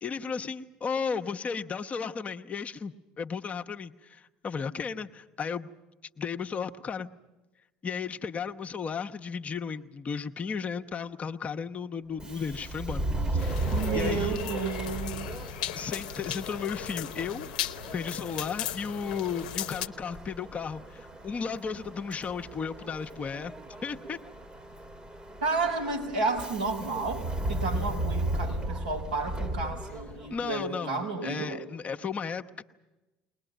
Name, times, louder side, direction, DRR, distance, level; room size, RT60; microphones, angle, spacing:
voice 1, 0.0-5.7 6.2-7.1 7.8-13.1 13.3-14.4 15.7-17.5 17.9-23.5 23.8-24.2 30.3-32.6, left 6 dB, 35° left, 5 dB, 1.0 m, -34 dB
Subway metro underground, 12.1-30.5, right 2 dB, 25° right, 1.5 m, -36 dB
sound 1, 13.4-19.9, left 11 dB, 70° left, 0.8 m, -37 dB
voice 2, 13.7-15.5 25.4-31.6, right 3 dB, 85° right, -2 dB, 4.2 m, -32 dB
21.5 x 20.0 x 9.2 m, 1.1 s
hypercardioid pair, 65°, 4 cm